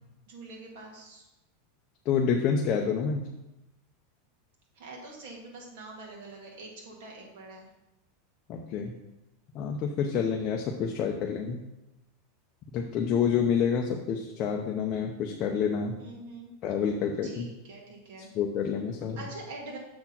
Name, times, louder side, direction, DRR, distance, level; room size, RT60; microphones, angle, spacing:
voice 1, 0.3-1.3 4.8-7.7 16.0-16.5 17.2-18.3 19.2-19.8, right 2 dB, 60° right, -1 dB, 2.1 m, -44 dB
voice 2, 2.1-3.3 8.5-8.9 9.5-11.6 12.7-15.9 16.6-17.5 18.3-19.2, left 6 dB, 30° left, 1 dB, 0.6 m, -28 dB
6.8 x 4.3 x 5.9 m, 0.95 s
supercardioid pair, 165°, 0 cm